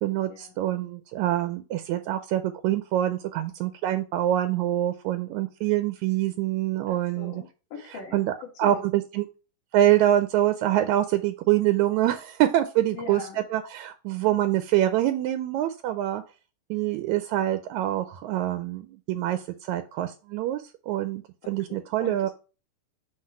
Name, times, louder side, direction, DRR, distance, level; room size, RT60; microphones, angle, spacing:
voice 1, 0.0-7.4 8.1-8.3 8.6-9.2 9.7-13.2 13.5-16.2 16.7-22.3, right 13 dB, 80° right, 10 dB, 1.7 m, -25 dB
voice 2, 6.9-8.8 12.9-13.4 17.3-17.5 21.7-22.3, left 5 dB, 70° left, 0 dB, 3.6 m, -41 dB
7.8 x 3.2 x 4.2 m, 0.33 s
omnidirectional pair, 3.9 m